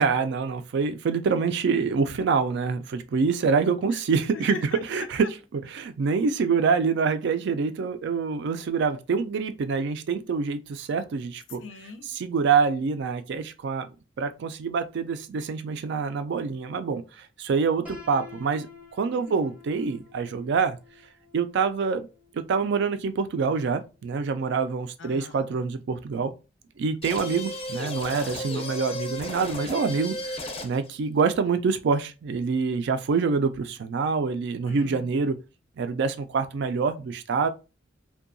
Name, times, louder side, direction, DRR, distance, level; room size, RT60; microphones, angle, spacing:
voice 1, 0.0-4.6 4.9-11.6 12.0-13.9 14.2-18.7 19.0-20.8 21.3-22.1 22.3-26.3 26.8-35.4 35.8-37.5, right 5 dB, 65° right, 0.3 m, -26 dB
voice 2, 4.3-5.3 11.6-12.1 19.3-19.4 25.0-25.5 34.7-35.1, left 4 dB, 85° left, 0.5 m, -40 dB
Piano, 17.8-23.7, left 4 dB, 10° right, 0.6 m, -50 dB
sound 1, 27.0-30.9, left 1 dB, 30° left, 0.5 m, -34 dB
2.7 x 2.2 x 2.5 m
head